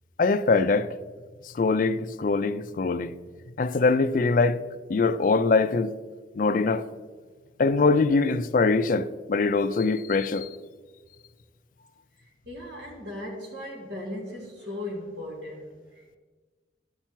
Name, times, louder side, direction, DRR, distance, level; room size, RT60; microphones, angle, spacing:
voice 1, 0.2-0.9 1.6-3.1 3.6-4.6 4.9-5.9 6.4-6.8 7.6-10.5, left 4 dB, 45° left, 0.3 m, -23 dB
voice 2, 12.2-16.2, left 1 dB, 70° right, 1.9 m, -38 dB
11.0 x 5.7 x 4.5 m
head